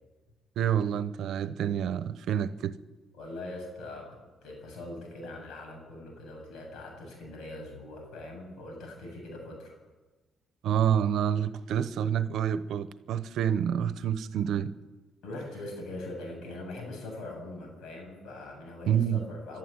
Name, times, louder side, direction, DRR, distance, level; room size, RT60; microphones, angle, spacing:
voice 1, 0.6-2.8 10.6-14.7 18.9-19.2, right 9 dB, 75° right, 1.0 m, -28 dB
voice 2, 3.1-9.8 15.2-19.6, left 2 dB, 80° left, 7.7 m, -42 dB
25.0 x 12.0 x 9.1 m
cardioid pair, 90°, 0 cm